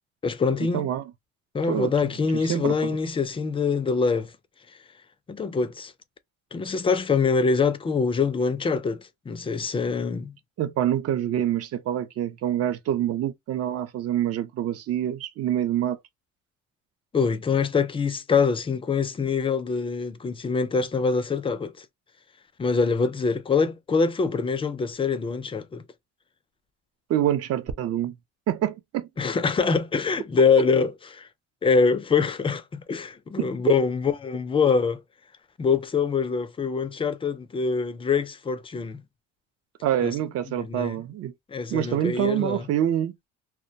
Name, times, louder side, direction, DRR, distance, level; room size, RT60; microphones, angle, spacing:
voice 1, 0.2-0.9 1.5-4.3 5.3-5.9 6.5-10.4 17.1-21.9 22.6-25.8 29.2-31.3 31.6-35.0 35.6-39.0 40.0-40.1 40.5-41.0 41.5-42.7, left 5 dB, 20° left, 0.3 m, -24 dB
voice 2, 0.7-1.0 1.7-1.9 2.5-3.0 10.6-16.0 27.1-28.1 28.5-29.1 39.8-41.3 41.7-43.1, right 11 dB, 55° right, 0.5 m, -26 dB
2.2 x 2.1 x 2.6 m
cardioid pair, 115°, 30 cm